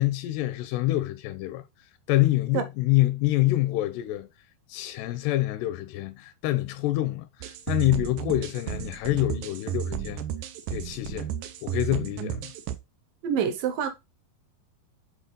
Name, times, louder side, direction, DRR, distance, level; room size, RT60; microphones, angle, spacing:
voice 1, 0.0-1.6 2.1-4.3 4.7-10.2 10.7-11.3 11.6-12.5, left 17 dB, 85° left, 2.6 m, -26 dB
sound 1, 7.4-12.8, right 10 dB, 85° right, 1.9 m, -33 dB
voice 2, 13.2-13.9, right 8 dB, 70° right, 2.3 m, -26 dB
8.1 x 4.1 x 3.9 m
omnidirectional pair, 4.8 m